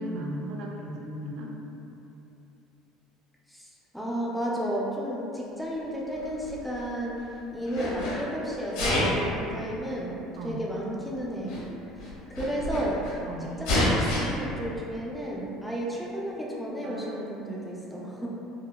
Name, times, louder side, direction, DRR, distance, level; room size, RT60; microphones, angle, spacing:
voice 1, 0.0-1.5 10.4-10.6 13.2-13.5 16.8-17.2 17.8-18.1, right 1 dB, 65° right, -1 dB, 0.4 m, -36 dB
voice 2, 3.5-7.3 7.5-11.5 12.0-13.0 13.4-18.3, equal, 5° left, -5 dB, 0.4 m, -33 dB
Sneeze, 6.2-7.2 7.6-8.2 8.7-9.3 10.2-10.3 11.2-11.3 11.5-11.6 12.0-13.1 13.6-14.2, left 1 dB, 80° left, 0.9 m, -28 dB
4.2 x 2.1 x 2.2 m, 2.9 s
cardioid pair, 145°, 0 cm